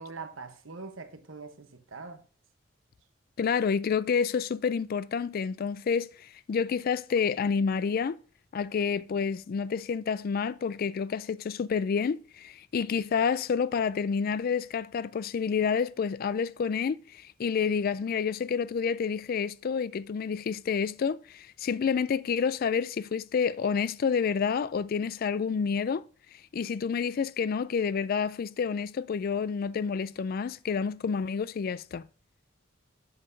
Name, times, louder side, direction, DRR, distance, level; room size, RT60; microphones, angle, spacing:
voice 1, 0.0-2.2, right 4 dB, 80° right, 1.0 m, -43 dB
voice 2, 3.4-8.2 8.5-26.0 26.5-32.0, left 6 dB, 50° left, 0.3 m, -29 dB
7.8 x 7.7 x 2.6 m
head